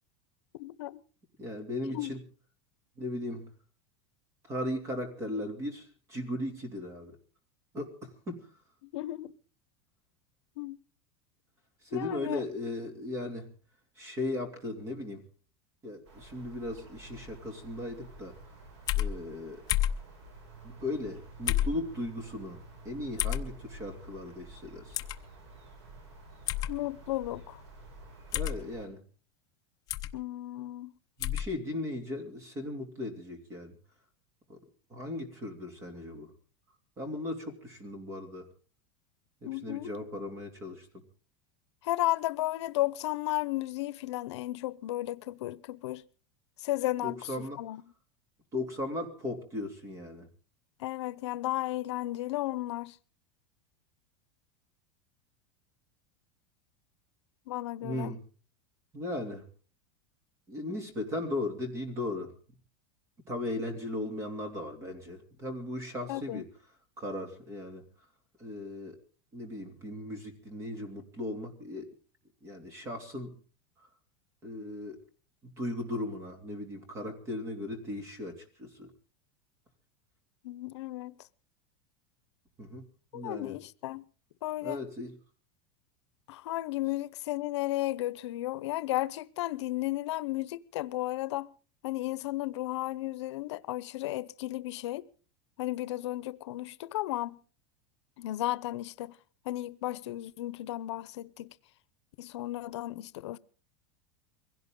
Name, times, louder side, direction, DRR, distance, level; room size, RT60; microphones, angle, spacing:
voice 1, 0.6-1.0 1.9-2.1 8.8-9.3 10.6-10.8 11.9-12.4 26.7-27.6 30.1-30.9 39.5-39.9 41.8-46.0 46.6-47.8 50.8-53.0 57.5-58.1 66.1-66.4 80.4-81.1 83.1-84.0 84.4-84.8 86.3-91.5 91.8-95.1 95.6-97.4 98.2-99.2 99.4-101.5 102.2-103.4, left 16 dB, 85° left, 0.7 m, -34 dB
voice 2, 1.4-2.2 3.0-3.5 4.5-7.1 7.7-8.5 11.8-13.5 14.0-15.2 15.8-18.3 19.0-19.6 20.6-25.0 28.3-29.0 31.2-33.8 34.5-34.6 34.9-36.3 37.0-38.5 39.4-40.9 47.0-47.6 48.5-50.3 57.8-58.2 58.9-59.5 60.5-62.3 63.3-66.5 67.0-67.8 68.4-69.0 69.3-71.9 72.4-73.3 73.8-73.9 74.4-75.0 75.4-78.9 82.6-82.8 83.1-83.6 84.6-85.1, left 1 dB, 20° right, 2.8 m, -37 dB
sound 1, 16.0-28.9, right 2 dB, 80° right, 7.9 m, -51 dB
sound 2, 18.9-19.1 19.7-20.0 21.5-21.8 23.2-23.4 24.9-25.2 26.5-26.7 28.3-28.6 29.9-30.1 31.2-31.5, left 12 dB, 25° left, 0.8 m, -29 dB
23.0 x 16.5 x 3.8 m
supercardioid pair, 175°, 14 cm